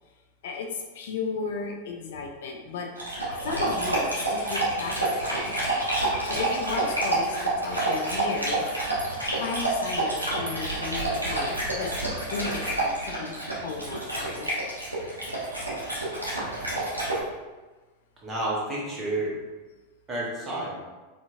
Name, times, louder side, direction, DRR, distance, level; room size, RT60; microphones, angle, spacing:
voice 1, 0.4-3.1 3.4-5.5 6.2-8.7 9.4-11.9 12.3-14.5, left 4 dB, 55° left, 1 dB, 0.4 m, -35 dB
Dog, 3.0-17.2, right 1 dB, 85° right, 1.0 m, -28 dB
voice 2, 18.2-19.3 20.1-20.8, right 2 dB, 20° right, -5 dB, 1.1 m, -30 dB
4.3 x 2.6 x 2.5 m, 1.2 s
figure-of-eight pair, 90°, 0 cm